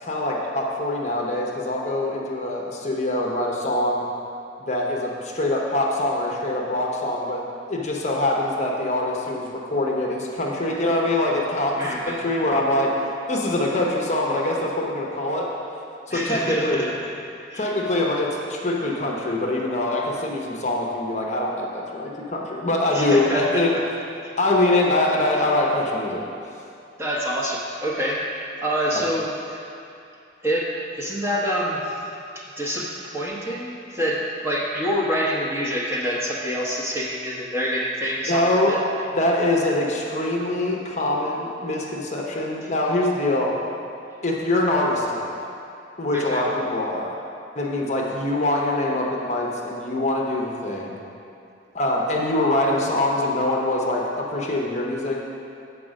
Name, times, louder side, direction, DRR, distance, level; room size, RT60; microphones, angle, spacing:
voice 1, 0.0-4.0 4.6-7.4 7.7-15.5 16.1-16.9 17.6-23.7 24.4-26.3 28.9-29.0 38.3-38.8 39.2-43.5 44.2-45.3 46.0-47.2 47.6-51.0 51.7-55.2, left 1 dB, 35° left, -2 dB, 0.7 m, -24 dB
voice 2, 11.8-12.2 16.1-17.1 17.5-17.7 22.9-23.8 24.2-24.3 27.0-29.6 30.4-32.0 32.3-38.8 46.1-46.5, equal, 15° right, -5 dB, 0.9 m, -26 dB
7.5 x 4.8 x 6.3 m, 2.6 s
head